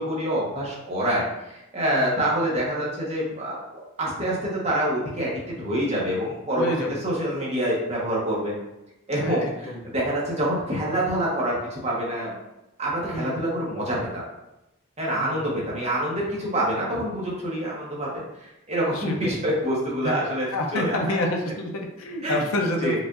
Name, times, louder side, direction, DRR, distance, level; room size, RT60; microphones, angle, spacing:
voice 1, 0.0-3.6 4.0-6.7 7.0-8.5 9.1-12.3 12.8-14.2 15.0-20.5 20.7-21.0 22.2-22.4 22.8-23.0, right 1 dB, 30° right, -5 dB, 1.0 m, -26 dB
voice 2, 6.5-7.0 9.2-9.8 13.1-13.4 15.2-15.5 16.9-17.1 18.9-19.4 20.0-20.2 20.5-23.0, left 1 dB, 75° left, 1 dB, 0.6 m, -28 dB
4.8 x 2.5 x 2.5 m, 0.92 s
head